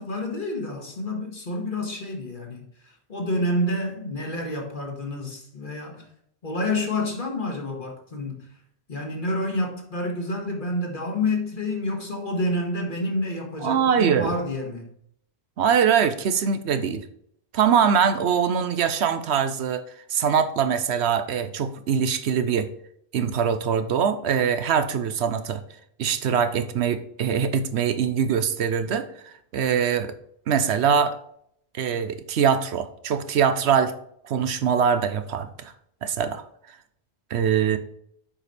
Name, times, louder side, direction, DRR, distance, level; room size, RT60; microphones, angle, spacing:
voice 1, 0.0-6.1 6.4-8.5 8.9-14.9, left 1 dB, 50° left, 1 dB, 1.8 m, -28 dB
voice 2, 13.6-14.3 15.6-17.0 17.5-19.8 20.1-22.7 23.1-25.6 26.0-29.1 29.5-30.1 30.5-31.2 31.7-33.9 34.2-35.7 36.0-36.4 37.3-37.8, right 7 dB, 85° right, 11 dB, 1.0 m, -23 dB
7.4 x 5.1 x 4.2 m, 0.67 s
omnidirectional pair, 1.1 m